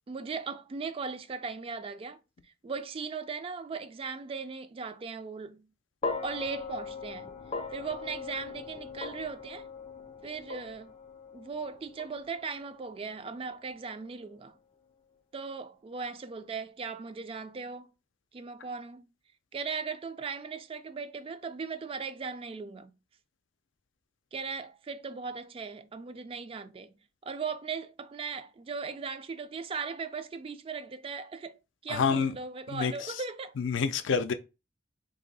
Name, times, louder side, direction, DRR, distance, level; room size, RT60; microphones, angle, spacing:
voice 1, 0.1-2.2 2.6-5.7 6.2-7.3 7.7-9.7 10.2-10.9 11.3-14.6 15.3-17.9 18.3-19.0 19.5-22.9 24.3-26.9 27.2-33.5, right 5 dB, 30° right, 0.3 m, -38 dB
sound 1, 6.0-14.3, left 4 dB, 30° left, 0.4 m, -40 dB
voice 2, 31.9-32.4 32.7-33.2 33.6-34.3, left 6 dB, 90° left, 0.4 m, -28 dB
2.9 x 2.6 x 4.0 m
head